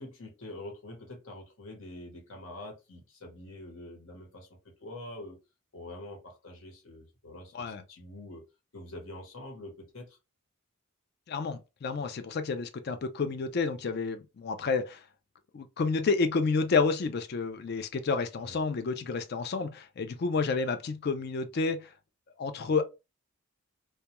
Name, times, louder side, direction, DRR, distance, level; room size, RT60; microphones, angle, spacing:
voice 1, 0.0-5.4 5.7-8.4 8.7-10.2 18.4-18.6, left 1 dB, 65° left, 1.0 m, -45 dB
voice 2, 11.3-15.0 15.5-21.9 22.4-22.8, left 4 dB, 45° left, 0.3 m, -30 dB
2.2 x 2.2 x 2.8 m
head